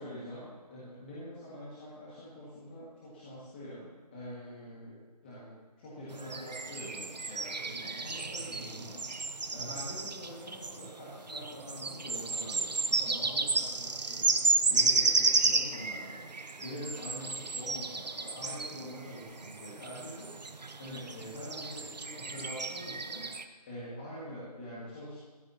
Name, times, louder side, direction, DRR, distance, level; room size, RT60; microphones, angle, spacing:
voice 1, 0.0-16.2 16.6-23.3 23.7-25.2, equal, 15° left, -9 dB, 1.8 m, -45 dB
sound 1, 6.1-23.4, right 3 dB, 90° right, 1.0 m, -32 dB
16.5 x 14.0 x 2.8 m, 1.3 s
figure-of-eight pair, 170°, 21 cm